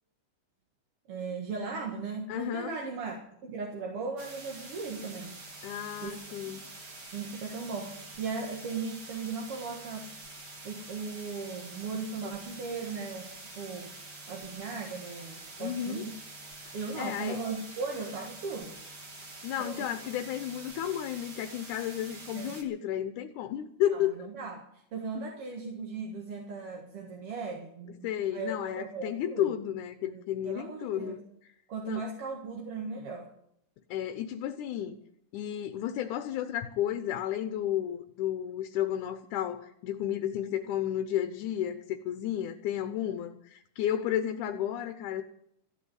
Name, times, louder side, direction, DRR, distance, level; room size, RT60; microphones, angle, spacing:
voice 1, 1.1-3.2 3.4-5.4 6.0-6.2 6.5-6.6 7.1-10.1 10.6-13.9 14.3-16.1 16.7-18.8 19.6-19.9 22.3-22.6 23.9-29.5 30.1-31.2 31.7-33.3, right 4 dB, 50° right, 0 dB, 2.5 m, -37 dB
voice 2, 2.3-2.8 5.6-6.6 15.6-16.1 16.9-17.4 19.4-24.1 28.0-31.2 31.8-32.0 33.9-35.0 35.3-45.2, left 11 dB, 85° left, 8 dB, 2.3 m, -32 dB
sound 1, 4.2-22.6, right 2 dB, 35° right, 2.4 m, -46 dB
15.0 x 8.4 x 9.5 m, 0.72 s
omnidirectional pair, 3.5 m